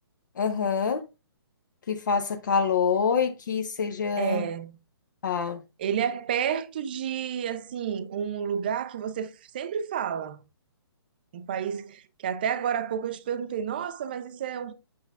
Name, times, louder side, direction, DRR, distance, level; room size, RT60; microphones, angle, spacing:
voice 1, 0.4-1.1 1.9-4.5 5.2-5.6, left 6 dB, 50° left, 0.8 m, -26 dB
voice 2, 4.1-4.7 5.8-10.4 11.3-14.7, right 8 dB, 20° right, 0.4 m, -30 dB
7.8 x 6.9 x 2.4 m
hypercardioid pair, 170°, 14 cm